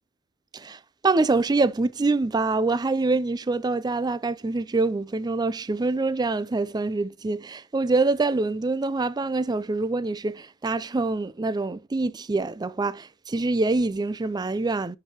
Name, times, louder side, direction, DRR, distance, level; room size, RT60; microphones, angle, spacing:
voice 1, 0.5-15.0, right 3 dB, 20° right, 0.4 m, -25 dB
9.9 x 4.7 x 2.9 m
head